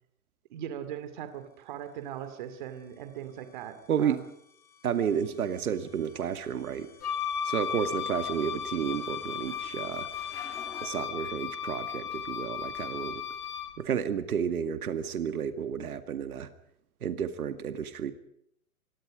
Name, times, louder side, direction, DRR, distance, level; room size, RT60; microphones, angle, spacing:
voice 1, 0.5-4.2, right 10 dB, 30° right, 9 dB, 2.5 m, -40 dB
sound 1, 1.9-10.9, left 5 dB, 5° left, 1.4 m, -54 dB
voice 2, 3.9-4.2 4.8-6.9 7.4-10.1 10.8-13.2 13.8-16.5 17.0-18.1, right 8 dB, 75° right, 9 dB, 2.2 m, -31 dB
Wind instrument woodwind instrument, 7.0-13.8, left 8 dB, 90° left, 2.7 m, -35 dB
27.0 x 22.5 x 5.1 m, 0.72 s
hypercardioid pair, 180°, 44 cm